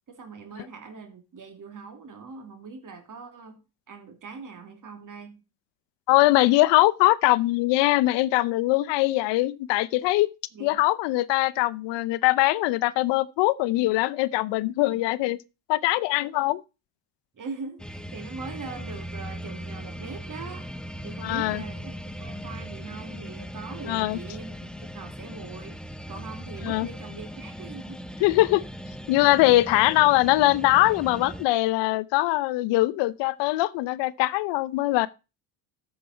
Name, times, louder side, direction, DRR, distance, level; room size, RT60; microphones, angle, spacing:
voice 1, 0.1-3.6 3.9-5.4 10.5-10.8 14.8-15.0 17.3-20.7 21.0-28.0, right 4 dB, 45° right, 2.8 m, -41 dB
voice 2, 6.1-10.3 10.6-15.4 15.7-16.6 21.2-21.6 23.9-24.2 26.6-26.9 28.2-28.6 29.1-35.1, left 18 dB, 75° left, 0.7 m, -22 dB
sound 1, 17.8-31.5, equal, ahead, 0.7 m, -39 dB
13.5 x 5.7 x 4.2 m
supercardioid pair, 65°, 43 cm